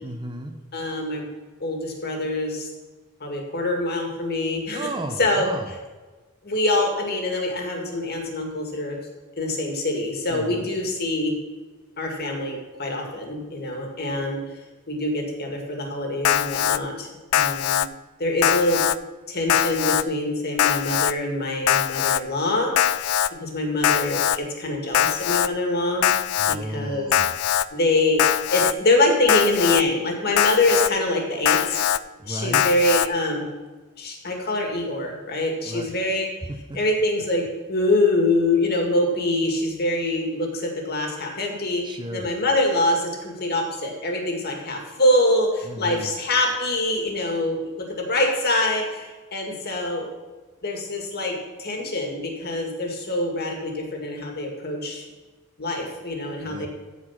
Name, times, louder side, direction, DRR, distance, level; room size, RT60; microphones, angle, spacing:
voice 1, 0.0-0.6 4.7-5.7 10.3-10.7 26.4-27.4 32.2-32.7 35.6-35.9 36.5-36.8 41.8-42.3 45.6-46.1 56.4-56.7, right 1 dB, 20° right, 5 dB, 0.7 m, -34 dB
voice 2, 0.7-1.2 1.6-2.7 3.2-4.9 5.2-5.5 6.4-9.0 9.4-11.3 12.0-14.4 14.9-17.8 18.2-18.8 19.3-23.1 23.4-26.1 26.5-27.1 27.7-28.2 28.5-31.8 32.2-33.4 34.0-36.3 36.7-41.8 42.1-50.1 50.6-55.0 55.6-56.7, left 1 dB, 45° left, 1 dB, 2.1 m, -24 dB
Alarm, 16.2-16.8 17.3-17.9 18.4-19.0 19.5-20.0 20.6-21.1 21.7-22.2 22.8-23.3 23.8-24.4 24.9-25.5 26.0-26.6 27.1-27.7 28.2-28.7 29.3-29.8 30.4-30.9 31.5-32.0 32.5-33.1, left 10 dB, 85° left, 0.4 m, -21 dB
14.5 x 4.9 x 5.8 m, 1.3 s
head